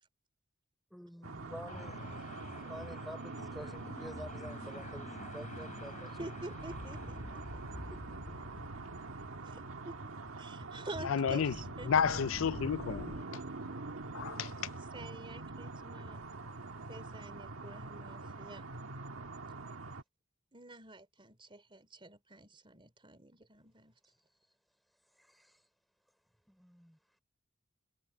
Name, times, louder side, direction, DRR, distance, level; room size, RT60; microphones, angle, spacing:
voice 1, 0.9-2.0 2.6-6.2 7.8-8.4 25.2-25.6 26.5-27.0, equal, ahead, 5.3 m, -49 dB
sound 1, 1.2-20.0, right 3 dB, 80° right, 1.6 m, -44 dB
sound 2, 1.7-13.2, left 1 dB, 40° left, 3.2 m, -49 dB
voice 2, 6.2-7.6 9.4-10.0 10.4-12.2 14.9-16.2 16.9-18.6 20.5-23.9, right 2 dB, 25° right, 3.4 m, -48 dB
voice 3, 11.0-11.5 11.8-13.4 14.1-14.5, left 6 dB, 70° left, 0.4 m, -31 dB
head